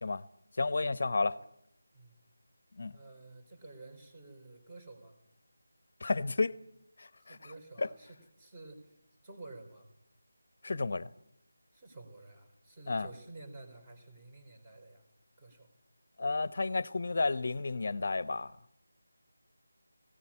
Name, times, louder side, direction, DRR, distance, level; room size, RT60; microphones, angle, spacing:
voice 1, 0.6-1.4 2.8-2.9 6.0-6.5 7.0-7.4 7.8-7.9 10.6-11.1 12.9-13.1 16.2-18.5, left 3 dB, 50° left, 0.9 m, -31 dB
voice 2, 2.9-5.2 7.2-9.0 9.2-9.9 11.7-15.0 15.4-15.7, right 2 dB, 20° right, 3.9 m, -51 dB
18.0 x 17.0 x 8.6 m
figure-of-eight pair, 170°, 0 cm